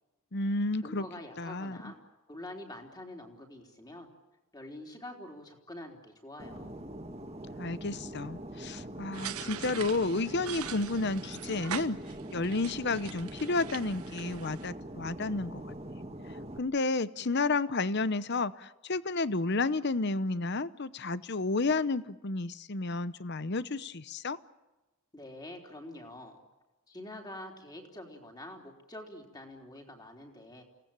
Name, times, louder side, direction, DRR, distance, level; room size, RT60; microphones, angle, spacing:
voice 1, 0.3-1.0 1.4-1.9 7.6-12.0 12.3-15.7 16.6-24.4, left 3 dB, 50° left, 16 dB, 0.8 m, -31 dB
voice 2, 0.8-2.0 2.3-4.1 4.5-6.8 25.1-26.4 26.9-30.6, left 1 dB, 20° left, 2 dB, 3.8 m, -46 dB
Fixed-wing aircraft airplane, 6.4-16.6, right 1 dB, 30° right, 2.0 m, -43 dB
sound 1, 9.1-14.7, right 9 dB, 85° right, 1.2 m, -43 dB
29.0 x 18.0 x 8.8 m, 1.1 s
head